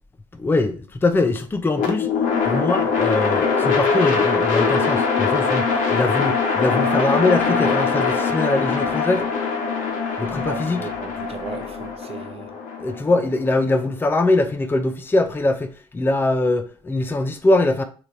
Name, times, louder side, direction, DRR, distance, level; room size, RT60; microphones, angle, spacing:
voice 1, 0.3-2.1 2.5-9.3 10.2-10.9 12.8-17.8, left 2 dB, 15° left, 0.5 m, -22 dB
sound 1, 1.7-13.9, left 5 dB, 70° left, 1.2 m, -22 dB
voice 2, 10.5-12.5, right 6 dB, 45° right, 0.8 m, -36 dB
3.3 x 2.9 x 3.8 m
cardioid pair, 85°, 14 cm